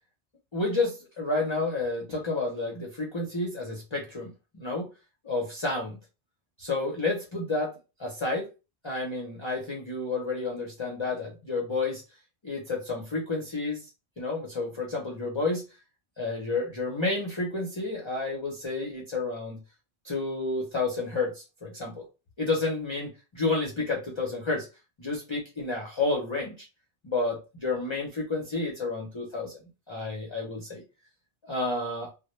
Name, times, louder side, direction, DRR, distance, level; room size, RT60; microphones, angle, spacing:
voice 1, 0.5-4.9 5.2-6.0 6.6-7.7 8.0-8.5 8.8-12.0 12.4-13.8 14.2-15.6 16.2-19.6 20.0-22.0 22.4-24.7 25.0-26.5 27.0-29.6 29.9-30.8 31.5-32.1, left 3 dB, 40° left, -1 dB, 0.4 m, -30 dB
2.1 x 2.0 x 2.9 m, 0.29 s
omnidirectional pair, 1.2 m